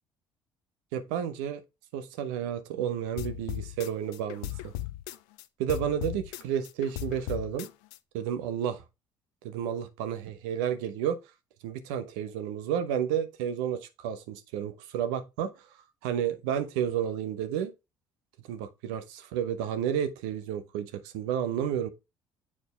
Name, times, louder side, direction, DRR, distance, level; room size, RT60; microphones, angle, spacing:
voice 1, 0.9-1.6 1.9-4.7 5.6-7.7 8.1-8.8 9.4-11.2 11.6-15.5 16.0-17.7 18.5-21.9, right 9 dB, 75° right, 0.8 m, -31 dB
sound 1, 3.2-5.4 5.7-8.0, left 15 dB, 75° left, 0.4 m, -37 dB
7.3 x 4.1 x 3.3 m
hypercardioid pair, 60°, 10 cm